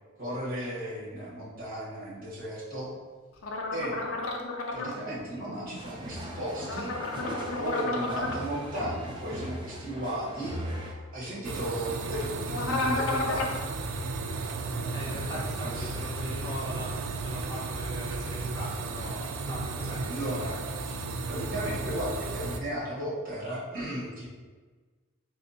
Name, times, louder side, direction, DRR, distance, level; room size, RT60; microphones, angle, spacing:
voice 1, 0.2-2.9 3.7-4.0 4.7-6.9 7.5-10.6 11.1-13.7 15.0-16.0 20.1-20.6 21.3-24.3, equal, 45° right, -6 dB, 1.2 m, -35 dB
sound 1, 3.4-4.9 6.6-8.4 12.5-13.6, left 2 dB, 75° left, 0.5 m, -31 dB
sound 2, 5.7-10.9, equal, 20° right, 0.5 m, -39 dB
sound 3, 11.4-22.6, right 3 dB, 85° right, 0.4 m, -34 dB
voice 2, 14.9-16.9 17.2-20.6, equal, 20° left, -7 dB, 1.0 m, -40 dB
3.5 x 3.1 x 2.7 m, 1.4 s
head